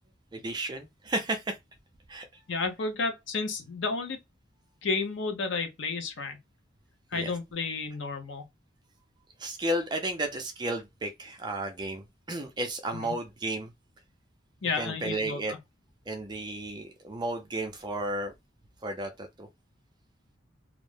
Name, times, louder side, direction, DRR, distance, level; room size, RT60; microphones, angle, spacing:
voice 1, 0.3-1.6 2.1-2.3 7.1-7.4 9.4-13.7 14.6-15.5 16.1-18.3 18.8-19.5, right 1 dB, 20° right, 0.4 m, -33 dB
voice 2, 2.5-4.2 4.8-6.4 7.1-8.5 12.9-13.2 14.6-15.6, left 4 dB, 75° left, 0.7 m, -32 dB
2.4 x 2.1 x 3.2 m
head